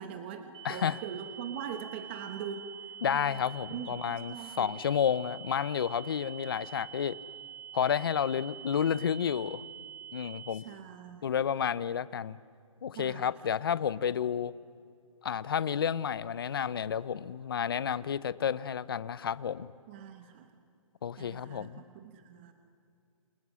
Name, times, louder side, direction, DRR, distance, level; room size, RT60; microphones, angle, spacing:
voice 1, 0.0-2.7 3.1-3.4 3.7-4.8 10.5-11.4 12.9-13.3 19.9-20.5 21.2-22.5, right 8 dB, 20° right, 7 dB, 1.0 m, -42 dB
sound 1, 0.5-10.5, right 8 dB, 60° right, 3.1 m, -46 dB
voice 2, 0.6-1.0 3.0-7.2 7.7-9.6 10.1-10.6 11.2-12.4 12.8-14.5 15.2-19.7 21.0-21.8, left 8 dB, 45° left, 18 dB, 0.7 m, -31 dB
28.5 x 28.0 x 6.3 m, 2.4 s
hypercardioid pair, 170°, 17 cm